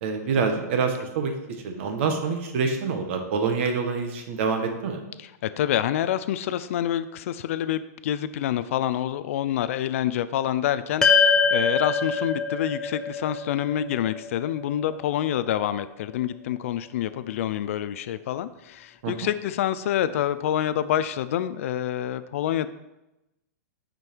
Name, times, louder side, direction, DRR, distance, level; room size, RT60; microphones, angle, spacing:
voice 1, 0.0-5.0 19.0-19.1, right 5 dB, 45° right, 5 dB, 1.3 m, -26 dB
voice 2, 5.2-22.7, left 11 dB, 50° left, 13 dB, 0.4 m, -27 dB
sound 1, 11.0-15.5, left 5 dB, 5° left, 0.5 m, -24 dB
9.6 x 5.3 x 4.5 m, 0.95 s
hypercardioid pair, 160°, 9 cm